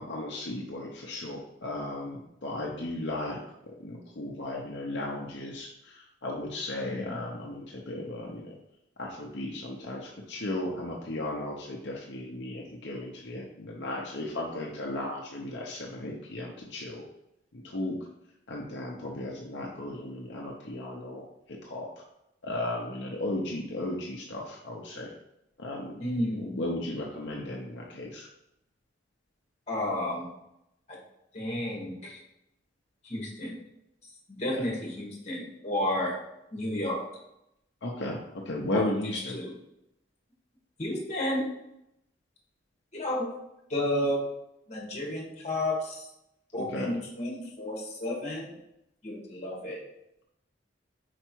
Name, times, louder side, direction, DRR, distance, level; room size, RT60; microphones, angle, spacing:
voice 1, 0.0-3.4 3.8-8.5 9.0-17.0 17.5-18.0 18.5-21.2 21.6-22.0 22.4-25.1 25.6-25.9 26.3-28.3 37.8-38.2 38.4-39.4 46.6-46.9, left 1 dB, 70° left, -2 dB, 0.8 m, -35 dB
voice 2, 6.8-7.2 26.0-26.5 29.7-30.2 30.9-31.0 31.3-32.2 33.0-33.6 34.4-36.1 36.5-37.0 38.7-39.5 40.8-41.4 42.9-43.3 43.7-44.2 44.7-46.1 46.5-48.5 49.0-49.8, left 1 dB, 35° left, -2 dB, 1.7 m, -32 dB
4.9 x 4.5 x 4.5 m, 0.83 s
head